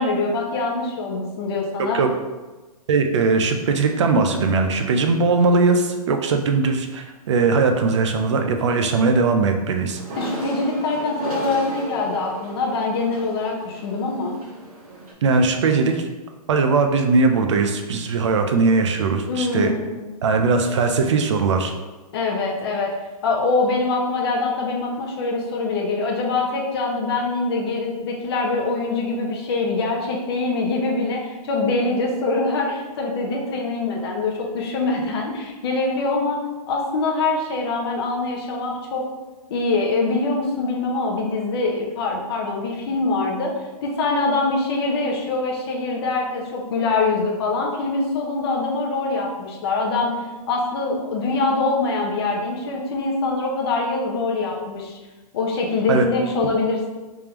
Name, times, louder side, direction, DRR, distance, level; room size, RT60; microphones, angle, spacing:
voice 1, 0.0-2.0 10.2-14.3 19.3-20.1 22.1-23.0 23.2-36.4 36.7-39.1 39.5-43.5 43.8-50.1 50.5-55.0 55.3-56.9, left 3 dB, 40° left, -1 dB, 0.6 m, -24 dB
voice 2, 2.9-10.0 15.2-16.1 16.5-19.7 20.2-21.7 55.9-56.0, right 4 dB, 50° right, 5 dB, 0.4 m, -19 dB
sound 1, 9.9-15.1, right 1 dB, 65° right, 1.0 m, -35 dB
3.4 x 3.3 x 2.9 m, 1.2 s
hypercardioid pair, 170°, 20 cm